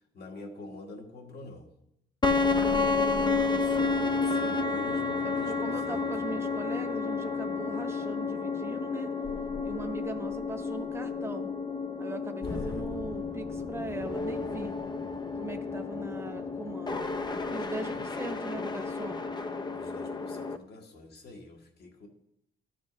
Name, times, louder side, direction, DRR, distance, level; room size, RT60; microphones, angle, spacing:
voice 1, 0.1-1.7 2.7-6.1 12.4-12.9 19.7-22.1, left 2 dB, 55° left, 2 dB, 1.7 m, -46 dB
sound 1, 2.2-20.6, left 4 dB, 20° left, 0.6 m, -31 dB
voice 2, 2.5-3.6 5.2-5.3 5.6-9.1 9.6-11.5 12.0-14.7 15.4-17.1 17.5-19.2, right 2 dB, 15° right, 6 dB, 1.1 m, -40 dB
12.5 x 7.7 x 3.2 m, 0.79 s
cardioid pair, 90°, 20 cm